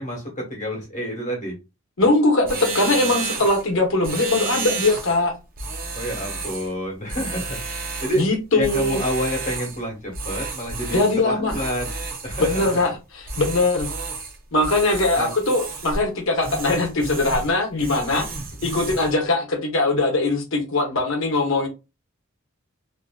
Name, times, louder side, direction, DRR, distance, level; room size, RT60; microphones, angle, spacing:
voice 1, 0.0-1.5 5.9-7.6 8.0-8.2 8.5-11.9 12.2-12.8 15.1-15.3, equal, 35° left, 1.1 m, -28 dB
voice 2, 2.0-5.3 8.2-9.0 10.9-11.5 12.4-13.9 14.5-18.3 18.6-21.7, left 2 dB, 60° left, 0.8 m, -21 dB
sound 1, 2.4-3.6 4.0-5.2 5.6-6.7 7.1-8.3 8.6-9.8 10.1-11.2 11.5-12.9 13.3-14.4 14.6-16.0 16.4-17.5 17.8-19.1, right 4 dB, 40° right, 0.5 m, -31 dB
2.5 x 2.5 x 2.2 m
head